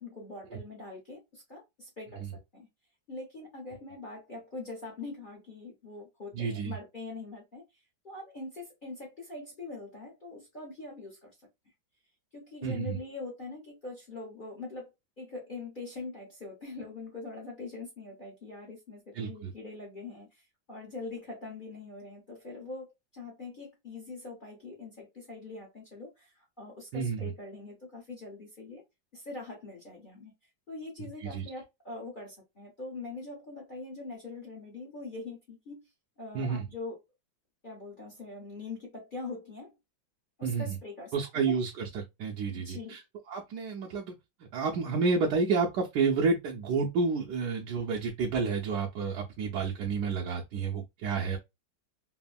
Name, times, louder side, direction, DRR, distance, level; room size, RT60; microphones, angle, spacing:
voice 1, 0.0-2.7 3.1-7.6 8.0-11.3 12.3-14.9 15.2-28.8 29.1-30.3 30.7-35.9 36.2-37.0 37.6-39.8 40.4-41.5 42.5-43.0, left 3 dB, 40° left, 0.7 m, -43 dB
voice 2, 6.3-6.7 12.6-13.0 19.2-19.5 26.9-27.2 31.2-31.4 36.3-36.6 40.4-40.7 41.1-43.0 43.3-44.2 44.5-51.4, right 4 dB, 75° right, 1.1 m, -30 dB
3.4 x 2.0 x 2.3 m
omnidirectional pair, 2.0 m